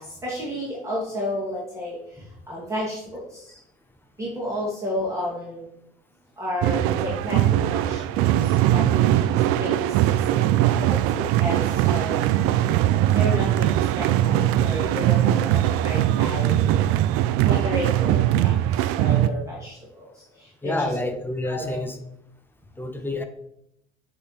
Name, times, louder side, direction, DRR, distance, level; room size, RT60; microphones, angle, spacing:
voice 1, 0.0-3.6 4.2-5.7 6.4-11.0 11.4-12.8 13.1-16.9 17.4-21.1 21.4-21.8, equal, 10° right, -7 dB, 2.3 m, -32 dB
sound 1, 6.6-19.3, right 13 dB, 45° right, 0.4 m, -21 dB
voice 2, 20.6-22.0 22.8-23.2, left 2 dB, 5° left, 6 dB, 0.9 m, -28 dB
8.5 x 3.5 x 4.3 m, 0.77 s
figure-of-eight pair, 60°, 31 cm